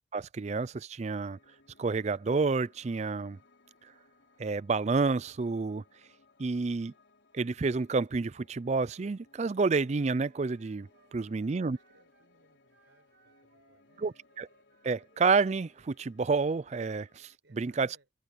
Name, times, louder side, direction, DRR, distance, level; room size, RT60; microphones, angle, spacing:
voice 1, 0.1-1.4 1.8-3.4 4.4-5.8 6.4-6.9 7.3-11.8 14.0-14.5 14.8-17.9, right 4 dB, 35° right, 0.4 m, -29 dB
Piano, 1.2-17.4, left 3 dB, 75° left, 4.9 m, -65 dB
Wind instrument woodwind instrument, 9.3-12.3 12.7-16.1, right 3 dB, 60° right, 3.6 m, -67 dB
voice 2, 11.1-14.2 17.4-18.1, right 2 dB, 80° right, 4.7 m, -68 dB
head